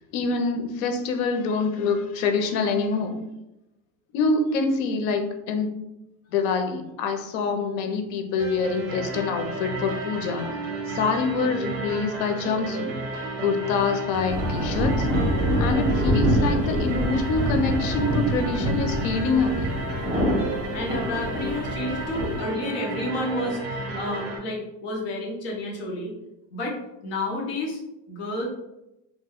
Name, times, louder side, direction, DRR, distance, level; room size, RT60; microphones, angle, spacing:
voice 1, 0.1-3.2 4.1-5.8 6.3-10.6 10.9-13.0 13.4-15.1 15.6-19.8, left 4 dB, 85° left, 6 dB, 0.7 m, -25 dB
sound 1, 8.4-24.4, right 2 dB, 60° right, 0.9 m, -32 dB
sound 2, 14.1-20.2, left 1 dB, 30° right, 1.2 m, -40 dB
sound 3, 14.3-22.4, equal, 5° right, 0.3 m, -26 dB
voice 2, 20.7-26.2 26.5-27.8 28.1-28.5, left 1 dB, 30° left, -2 dB, 0.7 m, -30 dB
2.7 x 2.2 x 3.5 m, 0.91 s
cardioid pair, 175°, 38 cm